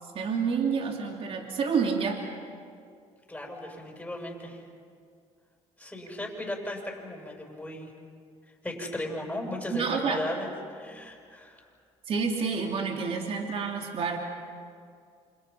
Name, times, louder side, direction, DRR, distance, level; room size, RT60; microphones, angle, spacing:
voice 1, 0.1-2.2 9.7-10.2 12.1-14.2, right 5 dB, 50° right, 2 dB, 2.9 m, -28 dB
voice 2, 3.3-4.6 5.8-7.9 8.6-11.6, left 1 dB, 10° left, 0 dB, 7.2 m, -36 dB
29.0 x 27.0 x 5.7 m, 2.3 s
supercardioid pair, 90°, 13 cm